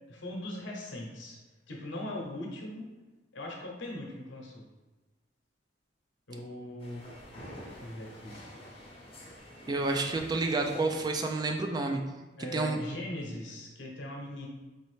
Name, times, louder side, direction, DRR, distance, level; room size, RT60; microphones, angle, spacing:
voice 1, 0.1-1.4 1.7-2.9 3.3-4.6 6.3-7.0 7.7-8.4 12.4-14.5, left 1 dB, 75° left, -1 dB, 0.9 m, -40 dB
sound 1, 6.8-11.7, equal, 30° left, 0.8 m, -48 dB
voice 2, 9.7-12.0 12.5-12.8, right 3 dB, 20° right, 4 dB, 0.3 m, -29 dB
4.1 x 2.8 x 3.1 m, 1.2 s
head